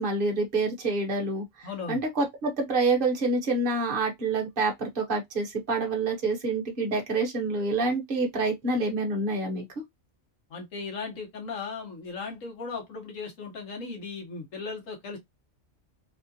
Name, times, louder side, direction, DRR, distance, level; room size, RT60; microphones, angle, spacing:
voice 1, 0.0-9.6, right 3 dB, 45° right, 1.2 m, -27 dB
voice 2, 1.6-2.0 10.5-15.2, left 4 dB, 80° left, 1.6 m, -37 dB
3.6 x 2.3 x 2.7 m
omnidirectional pair, 1.3 m